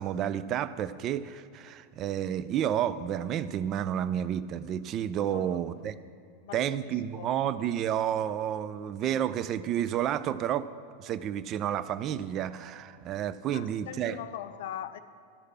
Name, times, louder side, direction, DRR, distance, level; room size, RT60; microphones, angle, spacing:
voice 1, 0.0-6.0 6.5-10.7 11.0-14.2, right 10 dB, 35° right, 14 dB, 0.4 m, -30 dB
voice 2, 5.2-5.9 6.4-7.4 13.5-15.0, left 11 dB, 55° left, 12 dB, 0.4 m, -41 dB
12.5 x 6.5 x 6.1 m, 2.3 s
figure-of-eight pair, 90°, 0 cm